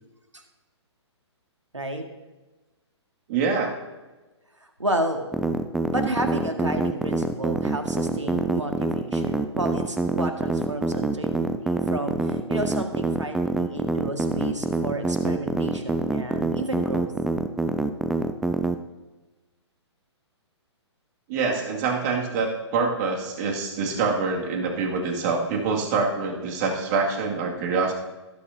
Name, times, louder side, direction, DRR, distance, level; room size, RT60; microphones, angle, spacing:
voice 1, 1.7-2.0 4.8-5.2 5.9-17.1, right 1 dB, 85° right, 5 dB, 1.8 m, -31 dB
voice 2, 3.3-3.8 21.3-27.9, right 4 dB, 35° right, 0 dB, 2.3 m, -25 dB
sound 1, 5.3-18.7, right 3 dB, 5° right, 0.3 m, -25 dB
18.5 x 8.4 x 2.8 m, 1.2 s
figure-of-eight pair, 125°, 15 cm